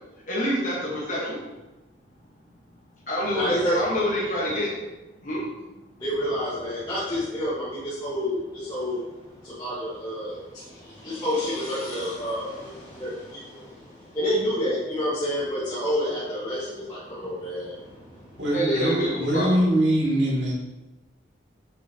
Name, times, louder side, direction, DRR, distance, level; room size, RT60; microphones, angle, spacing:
voice 1, 0.3-1.4 3.1-4.7 5.2-5.4 18.5-19.5, equal, 45° left, -6 dB, 1.4 m, -26 dB
voice 2, 3.3-3.8 6.0-9.0 9.4-18.0 18.3-18.4, equal, 20° left, -11 dB, 1.5 m, -29 dB
voice 3, 18.4-20.5, right 1 dB, 80° right, -5 dB, 2.3 m, -22 dB
6.8 x 6.1 x 2.9 m, 1.1 s
head